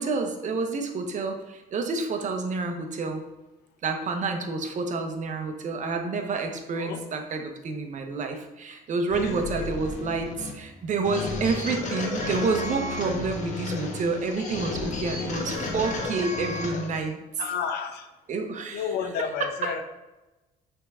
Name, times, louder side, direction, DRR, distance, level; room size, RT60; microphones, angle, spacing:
voice 1, 0.0-3.2 3.8-17.2 18.3-18.9 19.2-19.7, right 4 dB, 45° right, 5 dB, 0.9 m, -29 dB
voice 2, 9.1-9.7 17.4-18.1 18.7-19.8, left 7 dB, 75° left, 7 dB, 0.8 m, -31 dB
sound 1, 9.1-17.1, left 3 dB, 45° left, 1.3 m, -33 dB
5.8 x 3.6 x 4.8 m, 1.1 s
cardioid pair, 110°, 17 cm